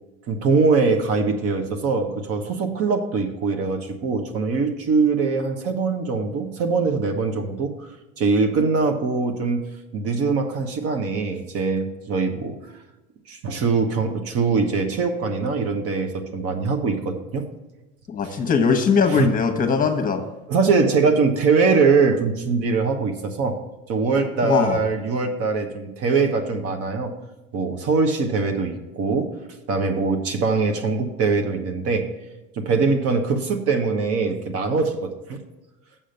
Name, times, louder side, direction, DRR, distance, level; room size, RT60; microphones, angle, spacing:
voice 1, 0.3-7.9 8.2-12.6 13.3-17.5 18.2-18.3 19.1-19.3 20.5-23.6 23.9-27.1 27.5-29.4 29.7-32.1 32.6-35.4, right 4 dB, 50° right, 6 dB, 1.2 m, -22 dB
voice 2, 18.1-20.2 24.4-24.8, left 5 dB, 25° left, 5 dB, 1.2 m, -20 dB
7.3 x 5.1 x 7.0 m, 1.0 s
supercardioid pair, 95°, 31 cm